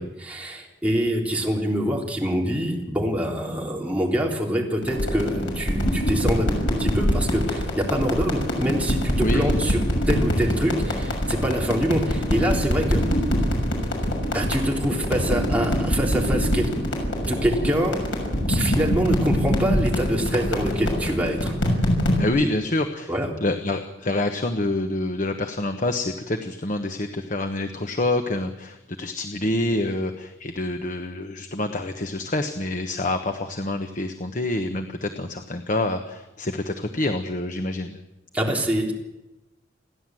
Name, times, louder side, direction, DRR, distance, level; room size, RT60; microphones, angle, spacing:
voice 1, 0.0-9.8 10.1-13.0 14.3-16.8 17.2-18.0 18.5-21.5 22.4-22.5 23.1-23.3 38.3-38.9, equal, 10° right, -2 dB, 3.6 m, -25 dB
sound 1, 4.8-22.3, equal, 75° left, 6.5 m, -24 dB
voice 2, 22.2-23.1 23.4-38.0, left 2 dB, 45° left, 6 dB, 1.2 m, -27 dB
29.5 x 11.5 x 7.7 m, 1.0 s
head